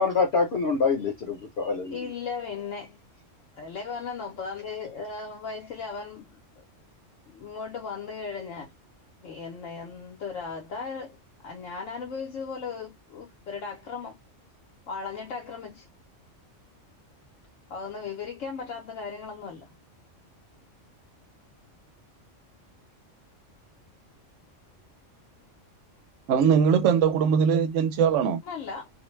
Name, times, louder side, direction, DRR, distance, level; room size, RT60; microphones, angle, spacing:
voice 1, 0.0-2.1, left 4 dB, 60° left, 0.9 m, -25 dB
voice 2, 1.9-3.0 3.5-6.6 7.3-8.7 9.2-11.2 11.4-14.2 14.9-15.8 17.7-19.6 28.4-28.9, left 5 dB, 85° left, 1.1 m, -36 dB
voice 3, 26.3-28.4, right 7 dB, 75° right, 0.9 m, -21 dB
2.6 x 2.1 x 3.1 m
omnidirectional pair, 1.3 m